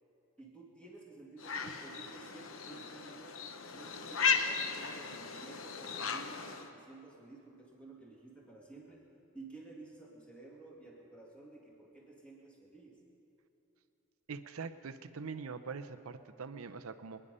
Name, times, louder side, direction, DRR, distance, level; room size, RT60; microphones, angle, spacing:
voice 1, 0.4-3.4 3.7-9.0 9.3-13.0, right 3 dB, 5° left, -4 dB, 2.6 m, -53 dB
sound 1, 1.4-6.7, left 5 dB, 70° left, 0.9 m, -36 dB
voice 2, 14.3-17.2, right 5 dB, 90° right, 11 dB, 0.7 m, -43 dB
25.5 x 10.0 x 5.5 m, 2.8 s
head